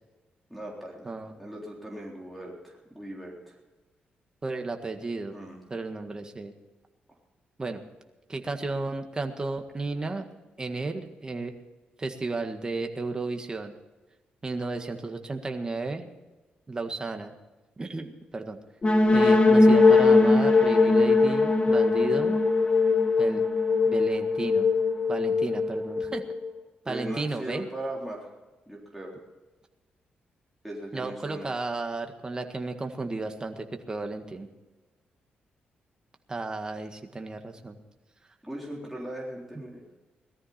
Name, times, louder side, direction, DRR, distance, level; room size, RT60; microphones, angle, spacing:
voice 1, 0.5-3.6 5.3-5.6 26.8-28.3 28.7-29.2 30.6-31.5 38.4-39.8, right 1 dB, ahead, -4 dB, 3.8 m, -38 dB
voice 2, 1.0-1.4 4.4-5.3 5.7-6.5 7.6-7.8 8.3-10.3 10.6-11.5 12.0-13.7 14.4-16.1 16.7-17.3 17.8-18.6 19.1-22.4 23.2-23.4 23.8-24.7 25.1-26.2 26.8-27.7 30.9-34.5 36.3-37.8, right 3 dB, 25° right, 5 dB, 1.7 m, -33 dB
sound 1, 18.8-26.5, left 3 dB, 30° left, 1.9 m, -21 dB
18.5 x 13.5 x 4.3 m, 1.1 s
cardioid pair, 110°, 3 cm